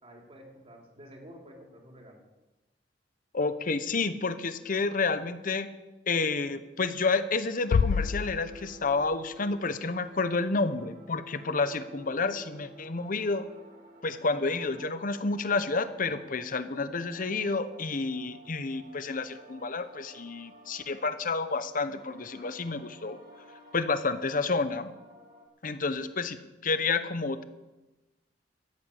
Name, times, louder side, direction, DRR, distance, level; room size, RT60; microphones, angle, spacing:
voice 1, 0.0-2.2 25.8-26.0, equal, 35° right, 0 dB, 3.3 m, -50 dB
voice 2, 3.3-5.7 6.1-13.5 14.0-23.2 23.7-24.9 25.6-26.4 26.6-27.4, left 3 dB, 50° left, 12 dB, 0.9 m, -30 dB
sound 1, 7.4-25.5, right 1 dB, 55° right, 2.3 m, -53 dB
sound 2, 7.7-9.6, left 6 dB, 85° left, 0.3 m, -29 dB
13.5 x 8.4 x 8.5 m, 1.1 s
head